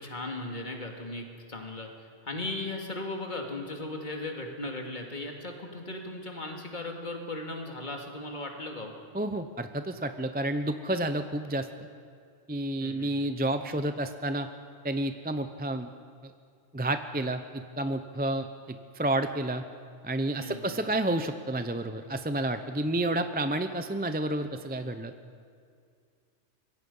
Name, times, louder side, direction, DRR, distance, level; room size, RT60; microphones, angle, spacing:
voice 1, 0.0-8.9 12.8-13.3 20.4-20.9, left 2 dB, 40° left, 2 dB, 2.6 m, -37 dB
voice 2, 9.1-11.7 12.5-14.5 14.8-15.9 16.2-16.3 16.7-19.6 20.0-25.1, right 1 dB, 10° right, 8 dB, 0.6 m, -30 dB
26.5 x 22.5 x 5.6 m, 2.2 s
omnidirectional pair, 1.2 m